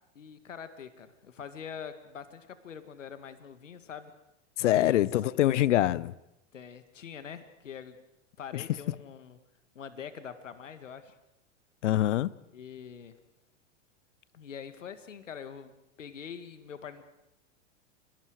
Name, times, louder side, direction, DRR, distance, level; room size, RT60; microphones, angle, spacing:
voice 1, 0.2-4.2 4.6-5.0 6.5-8.0 8.4-9.4 9.8-11.2 12.5-13.2 14.3-17.0, left 7 dB, 90° left, 2.0 m, -44 dB
voice 2, 4.6-6.1 8.5-8.6 11.8-12.3, left 13 dB, 75° left, 1.0 m, -24 dB
30.0 x 23.5 x 4.9 m
hypercardioid pair, 105°, 37 cm